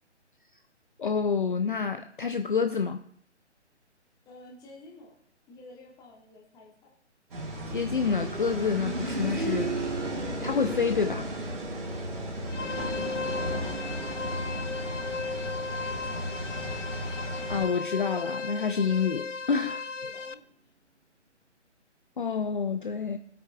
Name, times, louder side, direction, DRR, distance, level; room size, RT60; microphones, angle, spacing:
voice 1, 1.0-3.0 7.7-9.8 10.2-11.3 17.5-19.8 22.2-23.2, left 5 dB, 45° left, 9 dB, 0.5 m, -28 dB
voice 2, 4.2-5.1 5.5-6.9 12.4-15.2 15.6-16.6 20.0-20.4, left 2 dB, 10° left, -2 dB, 1.4 m, -51 dB
sound 1, 7.3-17.7, equal, 50° right, 2.8 m, -36 dB
sound 2, 7.4-18.1 19.5-19.6, right 3 dB, 80° right, 1.2 m, -37 dB
sound 3, 12.5-20.3, left 4 dB, 85° left, 0.7 m, -36 dB
21.0 x 8.5 x 2.3 m, 0.63 s
figure-of-eight pair, 140°, 36 cm